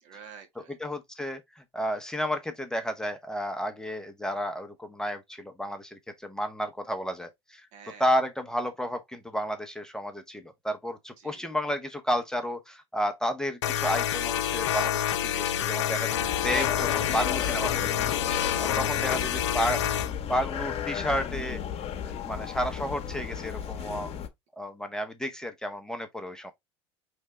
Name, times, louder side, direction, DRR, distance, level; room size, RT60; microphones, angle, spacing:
voice 1, 0.0-0.8 7.7-8.1 11.2-11.5 18.2-18.4 23.6-23.7, right 7 dB, 60° right, 1.6 m, -49 dB
voice 2, 0.8-7.7 8.0-18.2 18.8-19.8 20.3-21.6 22.0-24.1 24.6-26.5, equal, 5° left, 0.8 m, -32 dB
sound 1, 13.6-20.1, left 10 dB, 85° left, 0.5 m, -28 dB
sound 2, 16.1-24.3, left 8 dB, 45° left, 0.9 m, -34 dB
4.5 x 3.3 x 3.3 m
hypercardioid pair, 80°, 14 cm